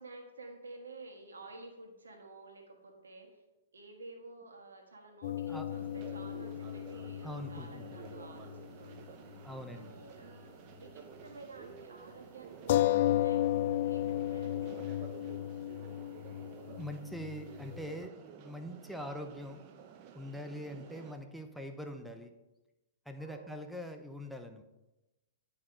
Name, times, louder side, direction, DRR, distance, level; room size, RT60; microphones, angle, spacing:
voice 1, 0.0-3.4 3.7-9.2 9.7-10.5 10.8-14.8 20.8-21.1 23.2-23.6, right 2 dB, 90° right, 3 dB, 1.4 m, -51 dB
sound 1, 5.2-9.1 9.4-9.5 12.7-17.9, left 13 dB, 55° left, 0.3 m, -34 dB
sound 2, 5.7-21.1, right 7 dB, 45° right, 0.8 m, -52 dB
voice 2, 7.2-8.2 9.4-10.0 16.8-19.6 20.1-22.3 23.1-24.6, equal, ahead, 5 dB, 0.7 m, -43 dB
10.5 x 4.7 x 3.8 m, 0.99 s
hypercardioid pair, 115°, 0 cm